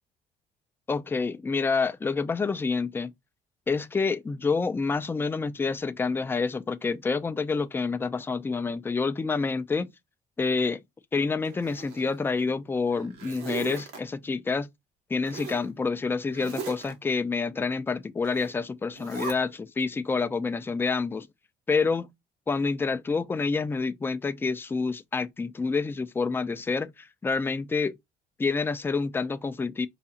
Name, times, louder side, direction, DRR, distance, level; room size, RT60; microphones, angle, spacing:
voice 1, 0.9-3.1 3.7-9.9 10.4-10.8 11.1-14.7 15.1-21.3 21.7-22.1 22.5-27.9 28.4-29.9, left 4 dB, 15° left, 0.3 m, -28 dB
Zipper (clothing), 11.4-12.4 12.9-14.0 15.2-15.7 16.3-16.9 18.2-18.5 18.9-19.3, right 5 dB, 85° right, 1.3 m, -39 dB
4.7 x 2.4 x 2.8 m
cardioid pair, 110°, 17 cm